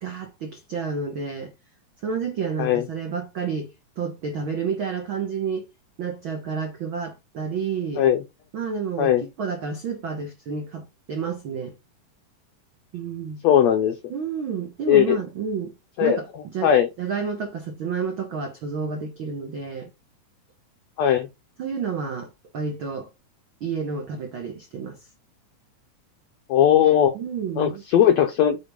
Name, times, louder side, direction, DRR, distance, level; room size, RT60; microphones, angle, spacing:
voice 1, 0.0-1.5 2.0-5.7 6.0-8.0 8.5-11.7 12.9-13.4 14.1-19.9 21.6-23.1 23.6-25.1 27.1-27.8, right 5 dB, 75° right, 1.1 m, -30 dB
voice 2, 13.4-13.9 14.9-15.2 16.0-16.2 16.6-16.9 21.0-21.3 26.5-27.1 27.6-28.6, left 10 dB, 85° left, 1.5 m, -18 dB
7.6 x 4.4 x 3.5 m
omnidirectional pair, 4.0 m